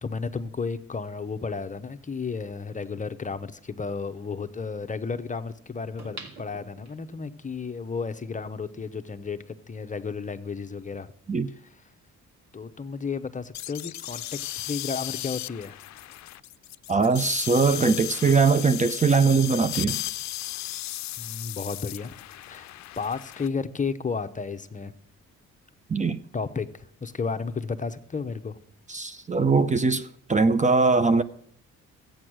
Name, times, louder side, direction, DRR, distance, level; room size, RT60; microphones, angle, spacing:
voice 1, 0.0-11.1 12.5-15.8 21.2-22.1 22.5-24.9 26.3-28.6, left 5 dB, 25° left, 0.8 m, -33 dB
sound 1, 6.0-7.3 7.8-7.9, right 3 dB, 60° right, 2.7 m, -44 dB
sound 2, 13.5-23.5, left 15 dB, 65° left, 0.5 m, -35 dB
voice 2, 16.9-20.0 25.9-26.2 28.9-31.2, right 4 dB, 25° right, 0.7 m, -21 dB
14.0 x 8.8 x 6.3 m
cardioid pair, 90°, 30 cm